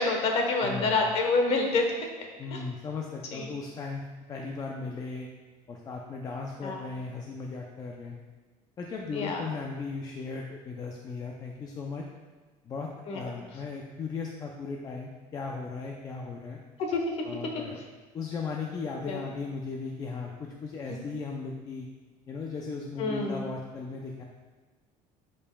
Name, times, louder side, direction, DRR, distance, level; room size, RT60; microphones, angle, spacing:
voice 1, 0.0-2.1 2.5-2.6 3.3-3.5 6.6-6.8 9.1-9.4 13.1-13.3 16.8-17.0 19.1-19.2 23.0-23.4, left 3 dB, 40° left, 2 dB, 1.1 m, -27 dB
voice 2, 0.6-1.0 2.4-5.3 5.7-8.2 8.8-12.0 12.6-16.6 17.2-17.8 18.1-21.9 22.3-24.2, left 4 dB, 25° left, 0 dB, 0.5 m, -37 dB
11.5 x 5.5 x 2.3 m, 1.3 s
cardioid pair, 175°, 15 cm